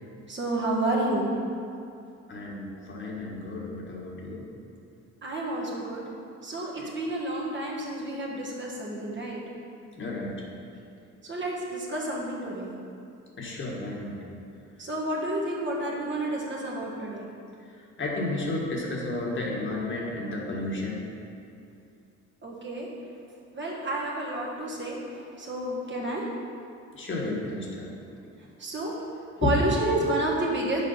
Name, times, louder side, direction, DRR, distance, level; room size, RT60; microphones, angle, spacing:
voice 1, 0.3-1.3 5.2-6.0 6.4-9.4 11.2-12.7 14.8-17.3 22.4-22.9 23.5-26.3 28.6-28.9 29.4-30.8, right 1 dB, 40° right, -3 dB, 1.5 m, -30 dB
voice 2, 2.3-4.4 6.8-6.9 9.9-10.3 13.4-14.2 18.0-21.0 26.9-27.9 29.4-29.6, left 2 dB, 40° left, -2 dB, 1.6 m, -32 dB
6.8 x 4.9 x 5.6 m, 2.5 s
cardioid pair, 90°, 30 cm